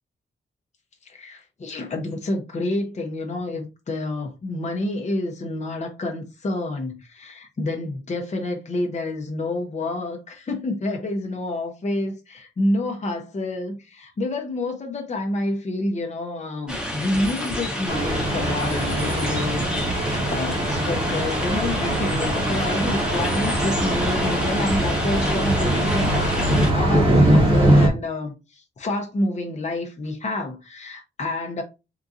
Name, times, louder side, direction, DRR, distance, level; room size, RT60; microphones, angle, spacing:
voice 1, 1.1-28.3 28.8-31.6, left 2 dB, 35° left, 0.6 m, -28 dB
sound 1, 16.7-26.7, equal, 5° right, 0.9 m, -29 dB
Thunder, 17.9-27.9, right 1 dB, 25° right, 1.0 m, -22 dB
3.7 x 2.6 x 2.4 m
wide cardioid pair, 145°, 20 cm